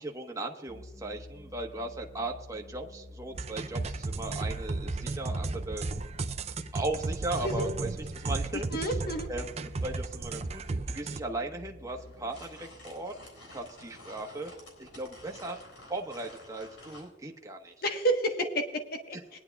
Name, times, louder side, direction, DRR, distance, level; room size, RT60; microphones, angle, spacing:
voice 1, 0.0-5.9 6.7-7.9 8.1-8.9 9.3-10.6 10.9-13.1 13.5-14.5 14.8-15.6 15.9-17.7, right 2 dB, 15° right, 1 dB, 1.2 m, -37 dB
sound 1, 0.7-14.0, left 1 dB, 30° left, 4.7 m, -50 dB
sound 2, 3.3-11.2, right 3 dB, 35° right, 0.5 m, -34 dB
voice 2, 8.5-9.3 17.8-19.4, right 1 dB, 55° left, 4 dB, 1.3 m, -30 dB
sound 3, 11.9-17.1, left 1 dB, 85° left, 3.9 m, -51 dB
20.5 x 10.5 x 2.4 m, 0.97 s
head